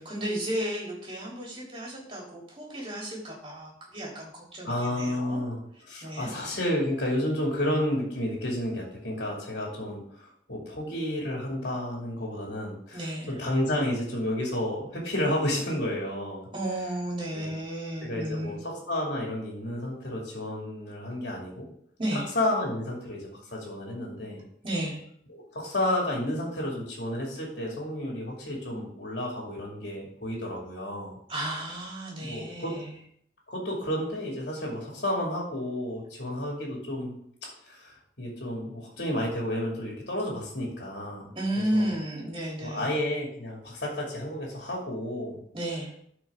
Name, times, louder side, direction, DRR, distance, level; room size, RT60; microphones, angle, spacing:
voice 1, 0.0-5.4 6.0-6.3 12.9-13.3 16.5-18.6 22.0-22.3 24.6-25.0 31.3-33.0 41.3-42.9 45.5-45.9, right 1 dB, 30° right, -4 dB, 3.2 m, -33 dB
voice 2, 4.6-5.6 5.9-16.5 17.3-17.5 18.0-21.7 22.1-24.4 25.3-31.2 32.2-32.7 33.5-37.2 37.7-41.3 41.7-41.9 42.6-45.4, left 1 dB, 65° left, -2 dB, 2.4 m, -31 dB
12.0 x 4.8 x 3.7 m, 0.66 s
head